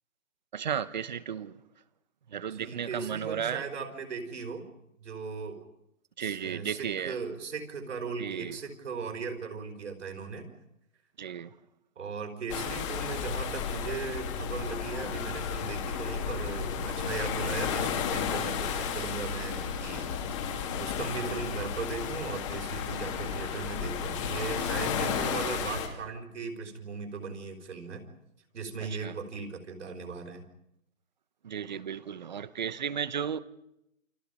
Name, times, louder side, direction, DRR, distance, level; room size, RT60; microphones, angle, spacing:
voice 1, 0.5-1.6 2.3-3.7 6.2-7.1 8.2-8.6 11.2-11.5 29.0-29.1 31.4-33.4, right 8 dB, 35° right, 17 dB, 0.9 m, -34 dB
voice 2, 2.4-4.7 5.0-5.6 6.2-10.5 12.0-20.1 20.8-28.0 28.5-30.5, right 5 dB, 60° right, 5 dB, 5.0 m, -38 dB
sound 1, 12.5-25.9, left 7 dB, 25° left, 2.6 m, -33 dB
29.5 x 25.5 x 5.4 m, 0.83 s
hypercardioid pair, 165°, 40 cm